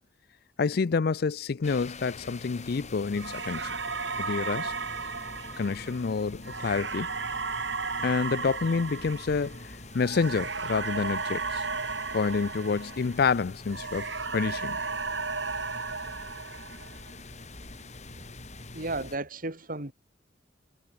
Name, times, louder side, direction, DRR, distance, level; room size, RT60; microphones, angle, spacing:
voice 1, 0.6-3.7 4.2-4.7 5.6-7.1 8.0-11.6 12.1-14.0 14.3-14.8, left 5 dB, 60° left, 0.5 m, -28 dB
sound 1, 1.6-19.2, left 2 dB, 40° left, 4.3 m, -45 dB
sound 2, 3.2-13.4 13.7-17.1, right 4 dB, 80° right, 4.5 m, -34 dB
voice 2, 18.7-19.9, right 2 dB, 50° right, 3.4 m, -34 dB
head